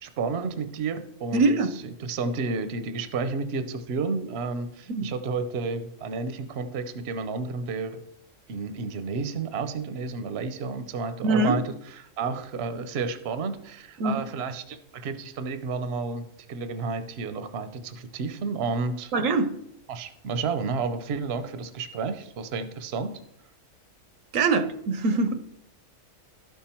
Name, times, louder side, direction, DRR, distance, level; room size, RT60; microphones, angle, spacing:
voice 1, 0.0-1.6 2.0-8.0 8.5-11.6 12.2-19.1 19.9-23.1, right 4 dB, 55° right, 0.9 m, -31 dB
voice 2, 1.3-1.7 4.9-5.1 11.2-11.6 14.0-14.2 19.1-19.5 24.3-25.4, right 3 dB, 80° right, 1.1 m, -23 dB
12.0 x 5.6 x 4.4 m
omnidirectional pair, 1.4 m